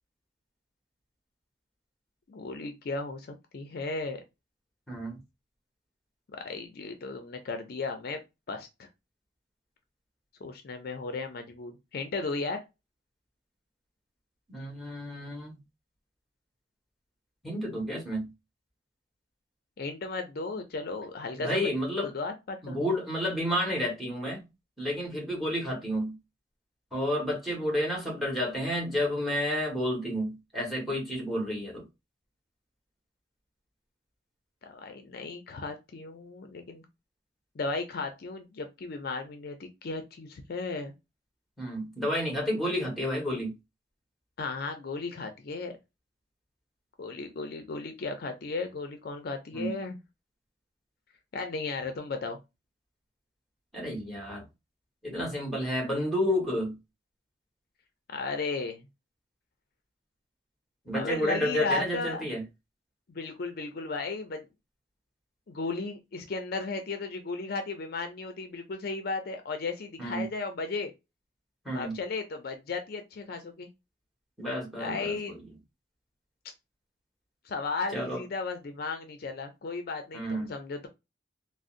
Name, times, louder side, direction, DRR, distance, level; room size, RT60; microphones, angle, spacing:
voice 1, 2.3-3.3 3.5-4.2 6.3-8.2 8.5-8.9 10.4-12.6 19.8-21.7 22.0-22.8 34.6-36.8 37.6-40.9 44.4-45.7 47.0-50.0 51.3-52.4 58.1-58.9 60.9-62.2 63.1-64.5 65.5-70.9 71.7-73.7 74.8-75.3 77.5-80.9, left 3 dB, 55° left, 0.5 m, -35 dB
voice 2, 4.9-5.2 14.5-15.5 17.4-18.3 21.4-22.1 22.6-24.4 24.8-26.1 26.9-31.8 41.6-43.5 49.5-49.8 53.7-54.4 55.0-56.8 60.8-62.4 70.0-70.2 71.6-71.9 74.4-75.1 77.9-78.2 80.1-80.5, equal, ahead, 1.2 m, -30 dB
3.7 x 2.0 x 2.4 m
head